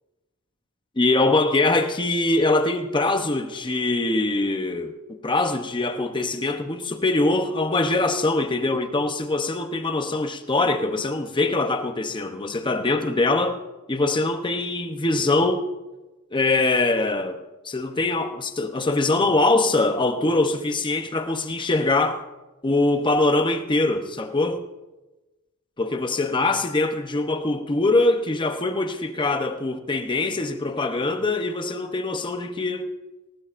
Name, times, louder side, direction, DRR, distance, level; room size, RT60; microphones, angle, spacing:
voice 1, 1.0-13.6 13.9-15.7 16.3-22.2 22.6-24.6 25.8-32.9, left 2 dB, 20° left, 0.8 m, -23 dB
19.0 x 18.5 x 2.6 m
head